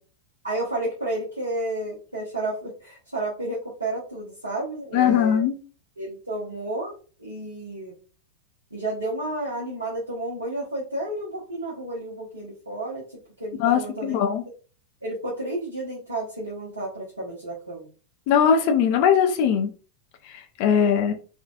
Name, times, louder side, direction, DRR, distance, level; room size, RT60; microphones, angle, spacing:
voice 1, 0.4-5.4 6.0-7.9 8.7-14.2 15.0-17.9, right 1 dB, 80° right, -6 dB, 0.9 m, -31 dB
voice 2, 4.9-5.6 13.6-14.4 18.3-19.7 20.3-21.1, left 8 dB, 45° left, 5 dB, 0.4 m, -20 dB
3.6 x 2.4 x 2.3 m, 0.38 s
figure-of-eight pair, 90°, 0 cm